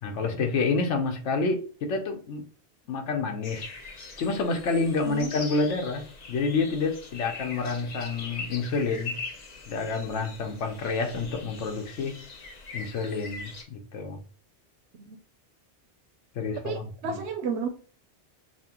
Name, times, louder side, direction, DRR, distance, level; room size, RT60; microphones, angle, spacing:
voice 1, 0.0-2.5 2.9-3.7 4.2-6.0 6.3-9.2 9.7-12.2 12.7-14.2 16.4-17.2, left 4 dB, 90° left, 3 dB, 1.1 m, -28 dB
sound 1, 3.4-13.6, left 4 dB, 45° left, 0.7 m, -42 dB
voice 2, 16.6-17.7, right 5 dB, 75° right, 5 dB, 0.8 m, -32 dB
5.7 x 2.1 x 2.9 m, 0.41 s
omnidirectional pair, 1.2 m